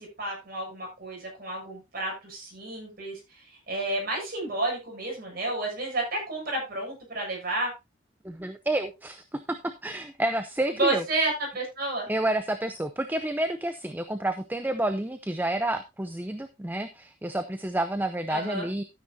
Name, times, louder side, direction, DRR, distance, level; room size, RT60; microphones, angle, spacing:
voice 1, 0.0-7.7 10.8-12.1 18.3-18.7, right 2 dB, 50° right, 0 dB, 7.1 m, -31 dB
voice 2, 8.2-11.0 12.1-18.8, right 1 dB, 10° right, 10 dB, 0.6 m, -29 dB
12.5 x 9.5 x 2.7 m, 0.22 s
head